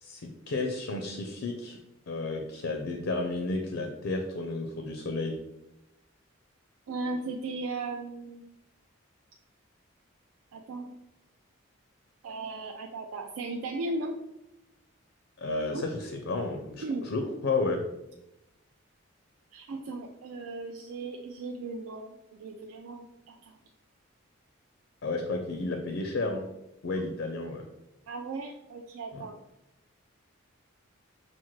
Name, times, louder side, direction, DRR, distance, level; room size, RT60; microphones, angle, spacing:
voice 1, 0.0-1.8 2.1-5.4 15.4-17.8 25.0-26.4 26.8-27.7 29.1-29.3, left 3 dB, 65° left, 4 dB, 0.4 m, -32 dB
voice 2, 6.9-8.5 10.5-10.9 12.2-14.2 15.7-15.9 16.8-17.1 19.5-23.6 28.1-29.4, right 3 dB, 80° right, 2 dB, 0.4 m, -37 dB
5.8 x 2.1 x 3.1 m, 0.89 s
head